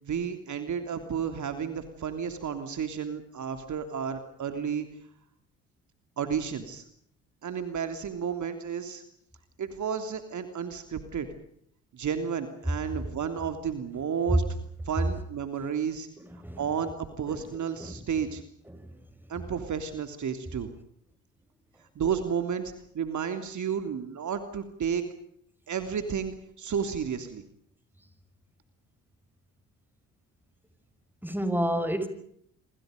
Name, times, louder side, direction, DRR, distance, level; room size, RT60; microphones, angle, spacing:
voice 1, 0.0-4.9 6.2-6.8 7.4-9.0 9.6-11.3 11.9-14.5 14.8-16.1 16.6-18.4 19.3-20.7 21.9-25.0 25.7-27.4, right 7 dB, 55° right, 3.2 m, -32 dB
voice 2, 16.2-16.6 17.3-17.4 17.8-17.9 18.7-18.9 31.2-32.1, equal, 5° right, 5.9 m, -30 dB
26.5 x 26.0 x 5.2 m
hypercardioid pair, 55°, 36 cm